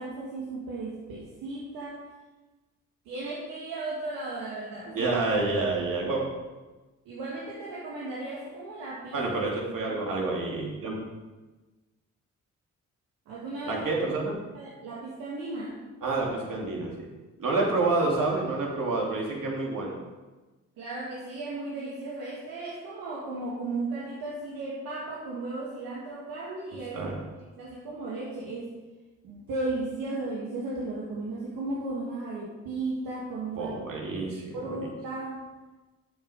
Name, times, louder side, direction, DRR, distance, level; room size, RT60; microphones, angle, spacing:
voice 1, 0.0-2.1 3.0-5.0 7.0-9.3 13.3-13.8 14.5-15.8 20.8-27.1 27.6-28.7 29.2-33.7 34.5-35.5, right 2 dB, 85° right, -5 dB, 1.5 m, -35 dB
voice 2, 4.9-6.2 9.1-11.0 13.7-14.4 16.0-17.1 17.4-20.0 26.9-27.2 33.5-34.6, right 3 dB, 65° right, -2 dB, 2.8 m, -28 dB
8.8 x 7.2 x 5.0 m, 1.2 s
supercardioid pair, 45°, 35 cm